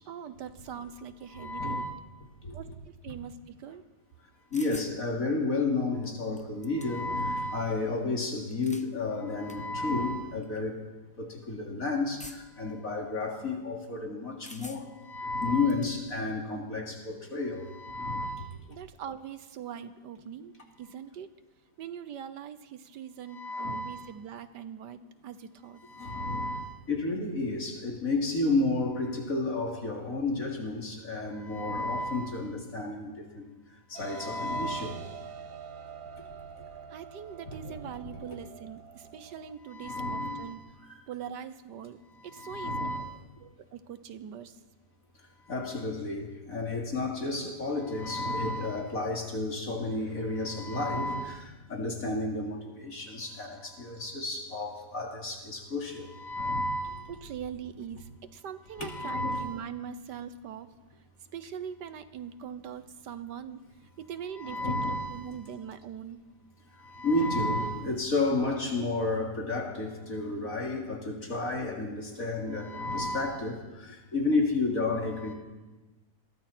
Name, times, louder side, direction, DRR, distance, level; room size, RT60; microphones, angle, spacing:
voice 1, 0.1-1.8 2.5-3.8 18.7-21.3 21.8-25.8 36.9-40.6 41.1-42.9 43.4-44.6 46.9-47.0 57.1-60.7 61.3-64.8 65.1-66.2 71.6-71.8, right 8 dB, 85° right, 12 dB, 1.7 m, -42 dB
voice 2, 1.3-1.9 2.4-2.7 4.5-10.8 11.2-18.6 23.3-24.1 25.8-33.5 33.9-35.0 37.5-37.8 39.6-40.7 42.2-43.3 45.5-57.2 58.8-59.5 64.3-65.5 66.7-75.3, left 2 dB, 55° left, 0 dB, 3.5 m, -32 dB
sound 1, 4.5-5.0 6.0-6.1 6.4-7.2 8.4-8.9 9.5-9.6 10.4-10.6 12.2-12.6 14.4-15.0 15.4-15.9, left 1 dB, 10° left, 0.5 m, -47 dB
sound 2, 33.9-39.5, right 6 dB, 60° right, 1.3 m, -45 dB
28.5 x 22.0 x 4.5 m, 1.1 s
omnidirectional pair, 1.8 m